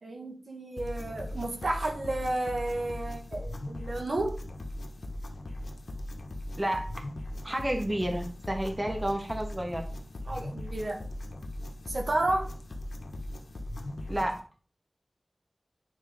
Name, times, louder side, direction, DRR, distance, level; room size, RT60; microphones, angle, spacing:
voice 1, 0.0-4.4 10.3-11.0 11.9-12.5, right 2 dB, 75° right, 1 dB, 1.9 m, -32 dB
sound 1, 0.8-14.4, left 1 dB, 85° left, 1.3 m, -39 dB
voice 2, 7.4-9.9 14.1-14.3, right 1 dB, 25° right, 3 dB, 2.0 m, -30 dB
9.7 x 5.0 x 5.2 m, 0.39 s
wide cardioid pair, 75°, 0 cm